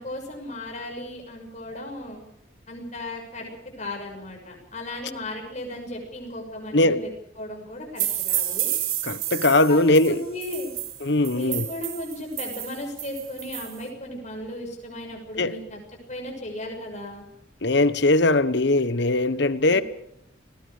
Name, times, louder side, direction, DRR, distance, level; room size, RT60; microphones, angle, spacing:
voice 1, 0.0-2.2 2.7-3.5 3.8-7.1 7.4-8.7 9.7-10.7 11.3-15.8 16.1-17.2 19.7-19.8, left 1 dB, 35° left, 6.3 m, -36 dB
sound 1, 8.0-13.8, right 12 dB, 85° right, 3.0 m, -30 dB
voice 2, 9.0-10.2 11.0-11.7 15.4-15.6 17.6-19.8, left 2 dB, 60° left, 1.1 m, -20 dB
30.0 x 19.5 x 5.1 m
head